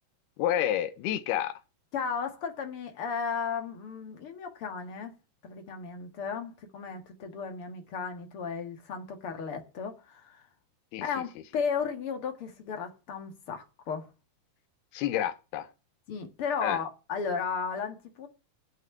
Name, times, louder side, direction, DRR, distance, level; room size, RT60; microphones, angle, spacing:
voice 1, 0.4-1.5 10.9-11.2 14.9-15.7 16.6-16.8, left 11 dB, 80° left, 2.9 m, -29 dB
voice 2, 1.9-5.1 5.4-10.5 11.0-14.1 16.1-18.3, left 6 dB, 45° left, 1.9 m, -34 dB
9.2 x 8.6 x 9.5 m
omnidirectional pair, 4.7 m